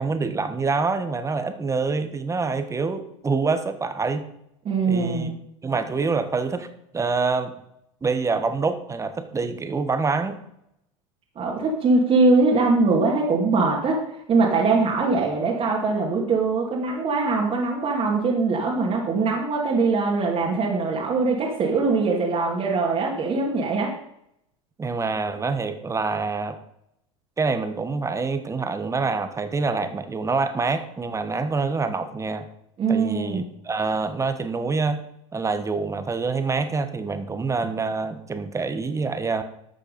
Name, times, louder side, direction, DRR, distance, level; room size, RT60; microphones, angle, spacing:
voice 1, 0.0-4.3 4.8-5.3 5.6-6.7 6.9-7.6 8.0-10.4 24.8-26.6 27.4-32.5 32.9-35.0 35.3-39.4, right 4 dB, 20° right, 9 dB, 1.2 m, -26 dB
voice 2, 4.6-5.3 11.4-23.9 32.8-33.5, right 3 dB, 35° right, -3 dB, 2.4 m, -22 dB
11.5 x 6.5 x 5.4 m, 0.77 s
hypercardioid pair, 95°, 17 cm